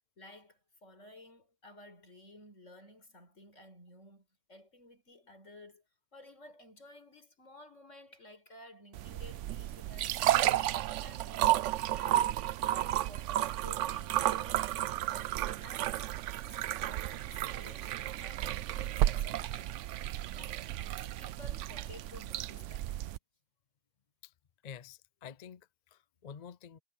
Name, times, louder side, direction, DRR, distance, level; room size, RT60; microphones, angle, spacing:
voice 1, 0.2-5.8 6.1-12.4 12.7-14.8 15.1-16.0 16.4-19.8 20.3-23.0, left 1 dB, 75° left, 5.3 m, -55 dB
sound 1, 9.0-23.2, right 13 dB, 75° right, 0.9 m, -32 dB
voice 2, 24.6-26.8, left 7 dB, 45° left, 0.6 m, -49 dB
omnidirectional pair, 1.3 m